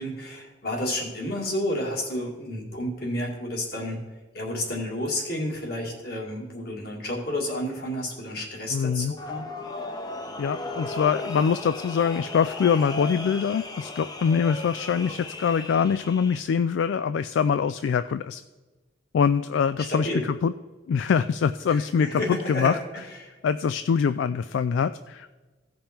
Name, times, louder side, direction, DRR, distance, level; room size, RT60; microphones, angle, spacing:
voice 1, 0.0-4.0 4.3-9.4 19.9-20.2 21.7-22.8 23.1-23.4, left 1 dB, 55° left, -1 dB, 2.2 m, -31 dB
voice 2, 8.7-9.1 10.4-18.4 19.1-20.5 20.9-22.8 23.4-25.3, left 6 dB, 75° left, 13 dB, 0.3 m, -24 dB
sound 1, 9.2-16.4, left 2 dB, 20° left, 0.7 m, -36 dB
16.0 x 5.3 x 4.4 m, 1.3 s
head